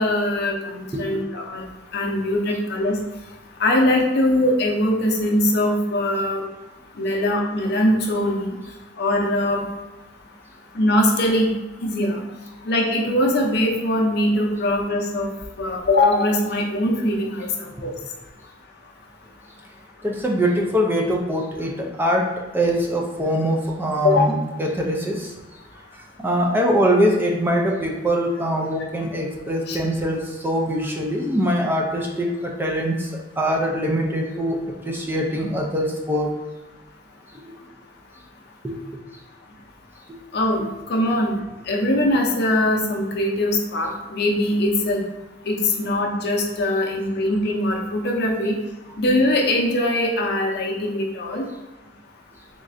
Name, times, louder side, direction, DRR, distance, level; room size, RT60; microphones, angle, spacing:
voice 1, 0.0-1.6 1.9-3.0 3.6-6.4 7.0-8.5 9.0-9.6 10.7-11.5 11.8-12.2 12.7-15.3 15.6-17.9 24.0-24.2 29.7-29.8 40.3-40.6 40.9-41.4 41.7-45.0 45.5-48.5 49.0-51.4, left 1 dB, 60° left, 1 dB, 0.6 m, -21 dB
voice 2, 0.9-1.2 20.0-25.3 25.9-34.6 34.8-36.3 38.6-38.8, equal, 10° right, 0 dB, 0.4 m, -23 dB
3.7 x 3.1 x 2.5 m, 1.1 s
head